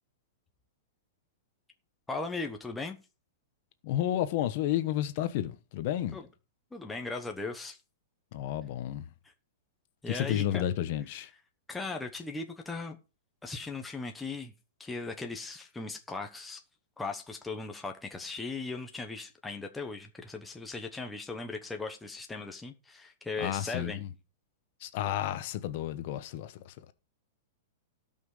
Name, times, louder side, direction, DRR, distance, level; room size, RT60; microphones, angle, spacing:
voice 1, 2.1-3.0 6.1-6.3 6.7-7.8 10.0-10.6 11.7-13.0 13.4-14.5 14.8-16.6 17.0-24.0, left 3 dB, 5° left, 0.9 m, -38 dB
voice 2, 3.8-6.2 8.3-9.1 10.1-11.3 23.4-24.1 24.8-26.9, left 12 dB, 40° left, 1.0 m, -31 dB
17.0 x 5.7 x 4.9 m
supercardioid pair, 170°, 0 cm